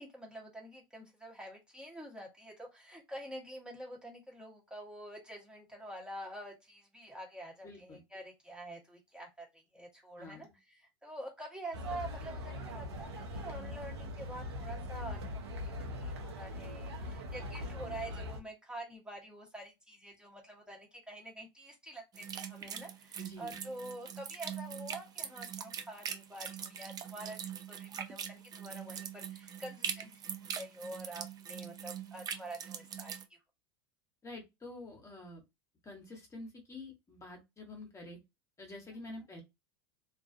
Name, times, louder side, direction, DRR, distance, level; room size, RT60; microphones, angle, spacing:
voice 1, 0.0-30.1 30.4-33.1 39.1-39.2, right 1 dB, 5° right, -1 dB, 0.9 m, -47 dB
voice 2, 7.6-8.0 10.2-10.5 23.2-23.6 34.2-35.4 35.8-38.2 38.6-39.4, left 2 dB, 20° left, 1 dB, 1.0 m, -48 dB
sound 1, 11.7-18.4, left 1 dB, 85° right, 0.7 m, -41 dB
sound 2, 22.1-33.2, right 8 dB, 30° right, 0.4 m, -42 dB
2.4 x 2.3 x 2.5 m, 0.22 s
hypercardioid pair, 85°, 13 cm